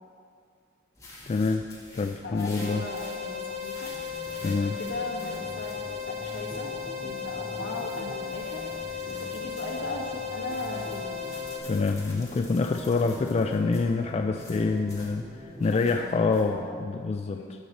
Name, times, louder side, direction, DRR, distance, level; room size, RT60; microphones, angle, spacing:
sound 1, 0.9-16.4, left 1 dB, 15° left, 1.9 m, -49 dB
voice 1, 1.3-1.7 1.9-2.8 4.4-4.8 11.7-17.4, left 4 dB, 30° left, 5 dB, 0.3 m, -26 dB
voice 2, 2.2-3.9 4.6-5.8 6.1-6.7 7.0-8.6 9.1-11.2 15.5-16.8 17.3-17.5, left 2 dB, 65° left, -3 dB, 1.8 m, -38 dB
sound 2, 2.6-11.6, left 7 dB, 80° right, 2.0 m, -36 dB
sound 3, 3.9-16.7, equal, 10° right, 2.7 m, -44 dB
16.0 x 6.3 x 4.1 m, 2.2 s
head